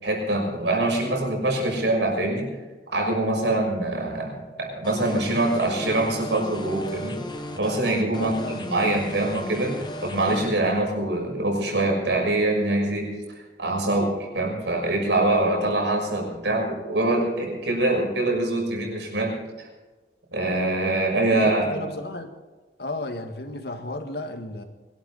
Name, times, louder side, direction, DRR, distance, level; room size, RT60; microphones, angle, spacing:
voice 1, 0.0-2.5 2.9-7.2 7.6-13.1 13.6-19.7 20.3-21.8, right 2 dB, 75° right, 0 dB, 6.2 m, -24 dB
sound 1, 4.8-10.5, left 1 dB, 25° left, 1.4 m, -35 dB
voice 2, 8.2-8.7 21.3-22.3 22.8-24.6, left 2 dB, 60° left, 6 dB, 2.0 m, -34 dB
22.5 x 12.5 x 4.2 m, 1.3 s
head